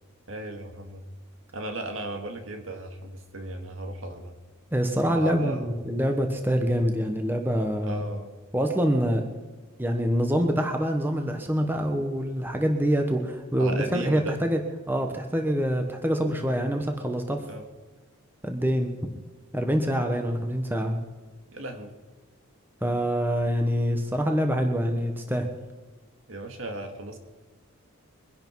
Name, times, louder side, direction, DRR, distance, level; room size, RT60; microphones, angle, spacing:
voice 1, 0.3-1.0 1.5-4.4 5.0-5.7 7.8-8.3 13.6-14.4 17.5-17.6 21.5-21.9 26.3-27.2, right 1 dB, 65° right, 5 dB, 2.0 m, -36 dB
voice 2, 4.7-8.0 8.5-9.3 9.8-14.6 14.9-17.4 18.4-19.0 19.5-21.0 22.8-25.5, equal, 10° right, 4 dB, 1.1 m, -25 dB
23.0 x 11.0 x 4.7 m, 1.3 s
head